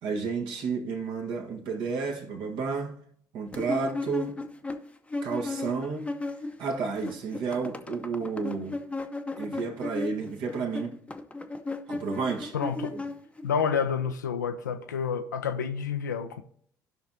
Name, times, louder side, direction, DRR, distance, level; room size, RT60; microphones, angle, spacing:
voice 1, 0.0-3.0 3.3-4.4 5.2-6.1 6.6-8.8 9.4-11.0 11.9-12.5 12.9-13.0, right 4 dB, 55° right, 1.5 m, -31 dB
sound 1, 3.5-6.7 6.9-13.6, left 2 dB, 10° left, 0.8 m, -35 dB
voice 2, 12.5-12.9 13.4-16.4, left 7 dB, 75° left, 0.7 m, -29 dB
16.0 x 5.8 x 2.8 m
figure-of-eight pair, 55°, 10 cm